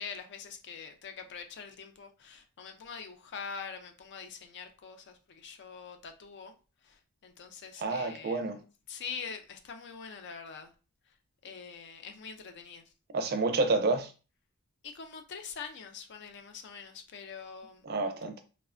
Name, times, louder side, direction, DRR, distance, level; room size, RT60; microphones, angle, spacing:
voice 1, 0.0-6.5 6.8-8.5 8.9-10.7 11.4-12.8 14.8-17.8, left 6 dB, 50° left, 0.4 m, -44 dB
voice 2, 7.8-8.6 13.1-14.1 17.8-18.3, right 3 dB, 45° right, 0.4 m, -29 dB
3.1 x 2.1 x 2.4 m
head